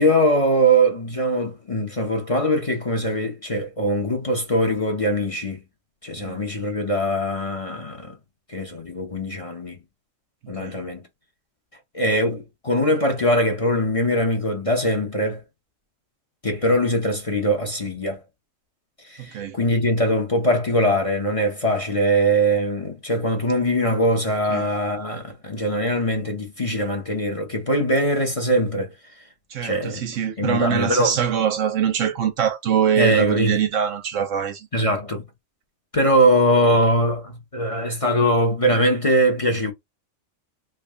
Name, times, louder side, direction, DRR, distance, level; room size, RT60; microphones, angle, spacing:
voice 1, 0.0-5.6 6.0-8.1 8.5-9.8 10.5-11.0 11.9-15.4 16.4-18.2 19.0-28.9 29.6-30.0 30.4-31.2 33.0-33.6 34.7-35.2 35.9-39.7, equal, 30° left, 0.8 m, -22 dB
voice 2, 19.2-19.6 24.5-24.7 29.5-34.7, right 8 dB, 75° right, 1.1 m, -23 dB
3.5 x 2.3 x 3.5 m
omnidirectional pair, 1.3 m